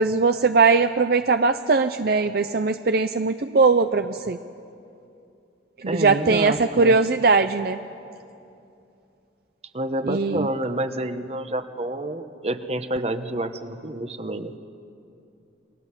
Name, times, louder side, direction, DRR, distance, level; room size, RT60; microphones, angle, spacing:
voice 1, 0.0-4.4 5.8-7.8 10.1-10.5, right 4 dB, 55° right, 9 dB, 0.6 m, -20 dB
voice 2, 5.9-7.0 9.7-14.5, right 1 dB, 35° right, 9 dB, 1.1 m, -28 dB
29.0 x 22.0 x 8.3 m, 2.7 s
head